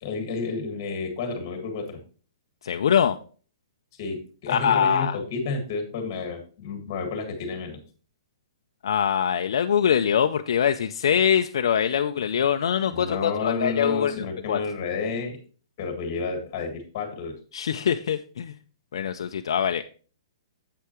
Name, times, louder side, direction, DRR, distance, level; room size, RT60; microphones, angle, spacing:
voice 1, 0.0-2.0 4.0-7.8 12.9-15.4 15.8-17.4, left 4 dB, 25° left, 5 dB, 1.7 m, -30 dB
voice 2, 2.6-3.2 4.5-5.2 8.8-14.6 17.5-18.5 18.9-19.8, left 8 dB, 60° left, 7 dB, 0.4 m, -23 dB
8.1 x 7.6 x 2.9 m, 0.40 s
hypercardioid pair, 175°, 3 cm